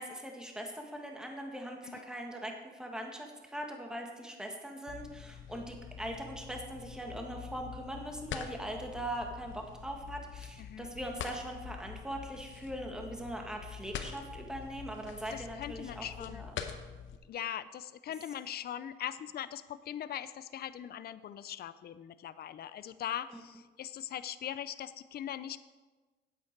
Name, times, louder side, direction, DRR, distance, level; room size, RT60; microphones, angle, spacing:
voice 1, 0.0-16.5, right 1 dB, 5° right, 2 dB, 1.6 m, -41 dB
sound 1, 4.9-17.2, left 8 dB, 75° left, 0.9 m, -45 dB
voice 2, 10.6-10.9 15.3-16.5 17.2-25.6, left 10 dB, 55° left, 14 dB, 0.5 m, -41 dB
9.4 x 8.6 x 4.6 m, 1.2 s
cardioid pair, 90°, 20 cm